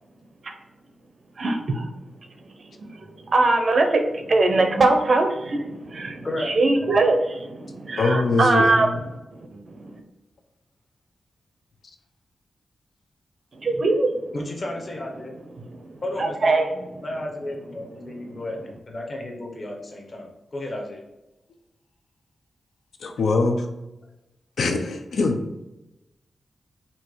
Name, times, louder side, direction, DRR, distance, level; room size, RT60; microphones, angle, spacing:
voice 1, 1.4-1.9 2.8-2.9 3.3-8.9 9.5-10.0 13.6-14.2 15.7-15.8 16.2-16.9, right 2 dB, 50° right, 5 dB, 0.6 m, -21 dB
voice 2, 8.0-9.0 23.0-23.7 24.6-25.4, left 3 dB, 75° left, 5 dB, 0.6 m, -22 dB
voice 3, 14.3-15.4 16.0-16.6 17.0-21.0, left 1 dB, 40° left, 1 dB, 0.9 m, -33 dB
4.4 x 2.7 x 4.5 m, 0.96 s
wide cardioid pair, 150°, 0 cm